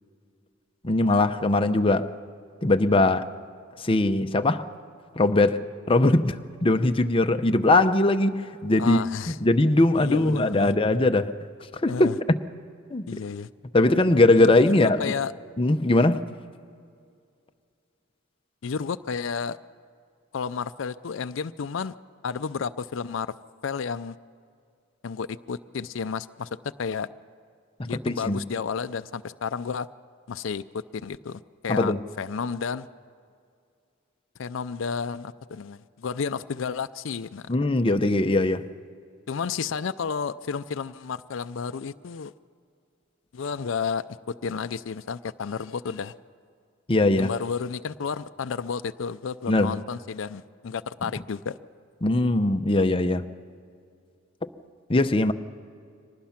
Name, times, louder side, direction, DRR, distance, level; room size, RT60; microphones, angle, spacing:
voice 1, 0.8-2.1 2.6-3.3 3.8-4.6 5.2-11.3 11.8-12.1 12.9-13.1 13.7-15.1 15.6-16.2 27.9-28.4 31.7-32.0 37.5-38.7 46.9-47.3 49.5-49.8 52.0-53.3 54.9-55.3, left 2 dB, 25° left, 0.7 m, -21 dB
voice 2, 8.8-9.4 10.0-10.7 11.9-12.1 13.1-13.5 14.4-15.3 18.6-19.6 20.3-21.9 22.2-23.3 23.6-24.1 25.0-26.5 26.8-27.1 27.9-29.9 30.3-30.6 30.9-32.9 34.4-37.5 39.3-42.3 43.3-44.0 44.4-46.1 47.2-51.6, left 6 dB, 70° left, 0.5 m, -31 dB
24.5 x 19.0 x 5.8 m
head